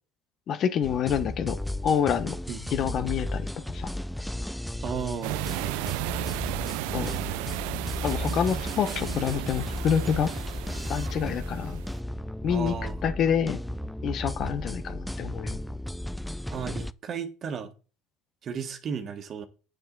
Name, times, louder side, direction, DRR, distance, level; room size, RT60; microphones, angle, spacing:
voice 1, 0.5-1.6 1.8-2.4 2.7-3.9 6.9-7.1 8.0-10.3 10.9-11.8 12.4-12.7 13.0-13.6 14.0-15.6, left 8 dB, 50° left, 1.2 m, -27 dB
sound 1, 0.8-16.9, left 1 dB, 5° left, 0.4 m, -34 dB
voice 2, 4.8-5.4 12.5-13.0 16.5-17.7 18.4-19.4, right 7 dB, 45° right, 1.6 m, -34 dB
sound 2, 5.2-12.0, right 20 dB, 80° right, 0.4 m, -34 dB
9.2 x 7.1 x 4.1 m
supercardioid pair, 95°, 0 cm